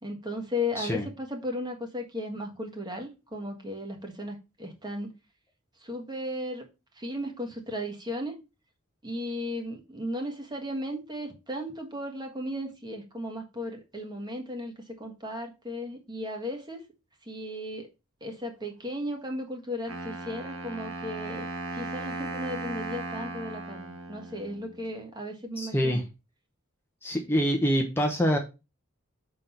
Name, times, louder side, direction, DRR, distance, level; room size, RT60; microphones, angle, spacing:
voice 1, 0.0-5.1 5.8-6.6 7.0-8.4 9.0-16.8 17.3-17.9 18.2-21.5 21.7-26.0, left 1 dB, 20° right, 1.5 m, -35 dB
Wind instrument woodwind instrument, 19.9-24.8, right 2 dB, 70° right, 1.3 m, -37 dB
voice 2, 25.6-26.0 27.0-28.4, equal, 10° left, 0.8 m, -25 dB
6.2 x 3.9 x 5.6 m
head